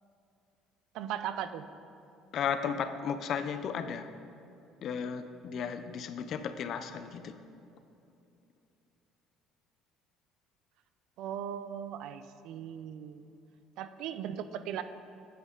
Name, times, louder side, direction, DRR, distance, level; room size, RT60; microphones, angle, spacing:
voice 1, 0.9-1.7 11.2-13.3 13.8-14.8, right 9 dB, 70° right, 11 dB, 0.4 m, -38 dB
voice 2, 2.3-4.1 4.8-7.4, left 7 dB, 50° left, 10 dB, 0.4 m, -34 dB
9.2 x 6.7 x 3.7 m, 2.8 s
cardioid pair, 130°, 0 cm